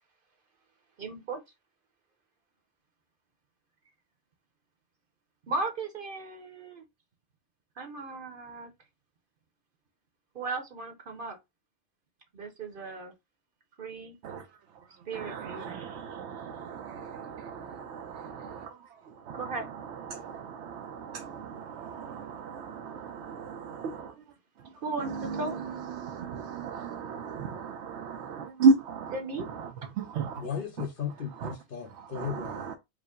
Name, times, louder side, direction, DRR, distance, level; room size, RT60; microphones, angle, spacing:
voice 1, 1.0-1.4 5.5-6.8 7.8-8.7 10.3-11.4 12.3-13.1 13.8-14.2 15.1-15.8 19.3-19.7 24.8-25.6 29.1-29.5, right 3 dB, 55° right, 0.9 m, -36 dB
voice 2, 15.1-18.8 19.1-24.1 25.0-30.5 31.4-31.5 32.1-32.7, right 4 dB, 90° right, 0.9 m, -33 dB
voice 3, 30.3-32.7, left 7 dB, 55° left, 1.1 m, -36 dB
5.0 x 2.0 x 3.6 m
omnidirectional pair, 1.1 m